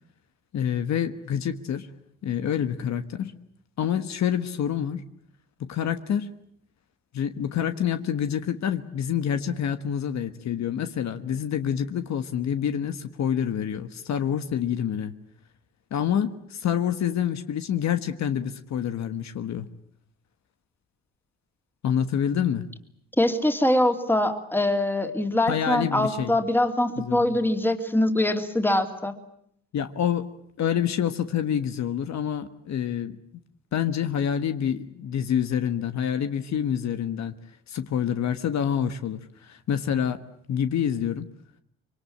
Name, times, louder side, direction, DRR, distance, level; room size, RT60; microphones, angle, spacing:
voice 1, 0.5-1.9 2.2-3.3 3.8-5.0 5.6-6.3 7.1-15.1 15.9-19.7 21.8-22.7 25.5-26.4 27.0-27.4 29.7-30.3 30.6-33.1 33.7-37.4 37.7-40.2 40.5-41.3, left 9 dB, 65° left, 9 dB, 1.4 m, -27 dB
voice 2, 23.2-29.1, left 1 dB, 5° left, 6 dB, 2.9 m, -23 dB
25.5 x 23.5 x 8.7 m, 0.70 s
cardioid pair, 90°, 30 cm